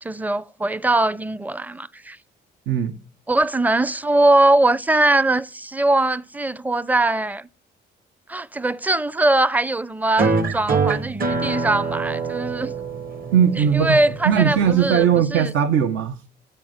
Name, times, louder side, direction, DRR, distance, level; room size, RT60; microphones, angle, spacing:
voice 1, 0.0-2.2 3.3-7.5 8.3-12.7 13.7-15.0 15.3-15.5, right 2 dB, 10° right, 0.6 m, -21 dB
voice 2, 2.7-3.0 13.3-16.3, right 8 dB, 80° right, 1.1 m, -19 dB
sound 1, 10.2-15.2, right 4 dB, 45° right, 1.5 m, -25 dB
13.0 x 7.8 x 8.0 m
cardioid pair, 90°, 20 cm